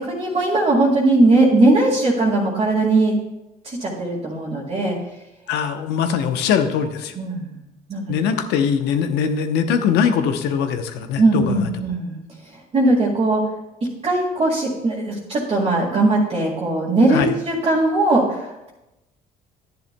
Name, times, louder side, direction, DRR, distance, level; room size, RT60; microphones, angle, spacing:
voice 1, 0.0-3.1 3.6-5.0 7.2-7.6 7.9-8.1 11.2-12.2 12.7-13.4 14.0-18.4, right 2 dB, 35° right, -5 dB, 1.9 m, -19 dB
voice 2, 5.5-7.1 8.1-11.7 17.1-17.3, left 7 dB, 90° left, 8 dB, 0.8 m, -21 dB
11.0 x 10.5 x 2.2 m, 0.94 s
cardioid pair, 110°, 17 cm